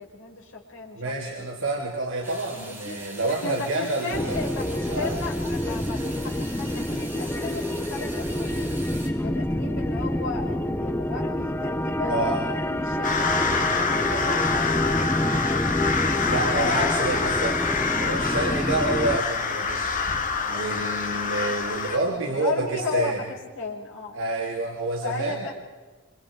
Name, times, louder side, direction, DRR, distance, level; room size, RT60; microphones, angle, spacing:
voice 1, 0.0-1.5 2.5-8.7 9.2-15.8 16.2-17.4 17.9-18.5 21.9-24.2 25.0-25.5, left 4 dB, 70° left, -1 dB, 6.1 m, -35 dB
voice 2, 0.9-4.5 4.9-5.1 12.1-12.5 16.3-17.6 18.0-20.0 20.5-23.2 24.1-25.5, right 2 dB, 65° right, -2 dB, 3.4 m, -28 dB
sound 1, 2.2-9.1, right 2 dB, 10° right, 5.5 m, -42 dB
sound 2, 4.1-19.2, left 1 dB, 10° left, 1.0 m, -27 dB
sound 3, 13.0-22.0, left 5 dB, 40° left, 2.4 m, -26 dB
28.0 x 27.0 x 5.0 m, 1.3 s
head